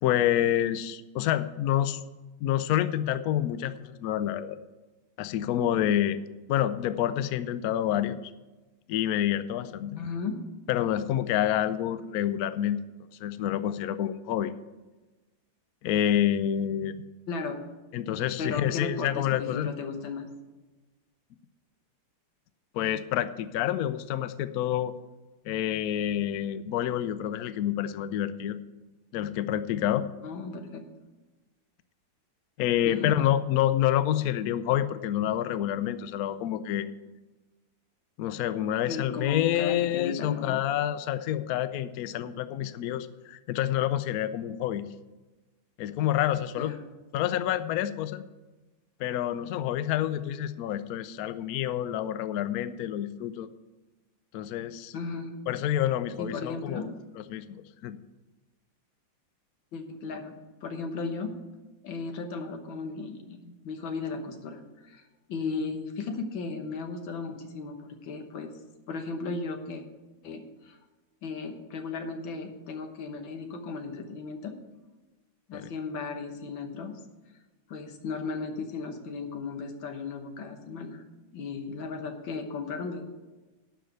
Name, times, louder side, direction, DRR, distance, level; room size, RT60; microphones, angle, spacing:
voice 1, 0.0-2.0 2.4-4.6 5.2-6.2 6.5-8.2 8.9-10.0 10.7-12.8 13.2-14.5 15.8-17.0 17.9-19.7 22.7-24.9 25.4-28.6 29.1-30.1 32.6-36.9 38.2-44.9 45.8-46.8 47.1-48.2 49.0-53.5 54.3-54.9 55.5-57.6 57.8-58.0 75.5-75.7, left 11 dB, 70° left, 13 dB, 0.8 m, -28 dB
voice 2, 10.0-10.4 17.3-17.6 18.4-20.3 30.2-30.8 32.8-33.1 38.9-40.6 46.6-46.8 54.9-55.3 56.2-56.9 59.7-61.3 61.8-65.0 65.3-68.5 68.9-69.9 70.2-70.8 71.2-74.5 75.5-76.9 77.7-81.0 81.3-83.0, left 4 dB, 90° left, 6 dB, 1.9 m, -35 dB
12.0 x 5.0 x 8.1 m, 1.2 s
omnidirectional pair, 2.1 m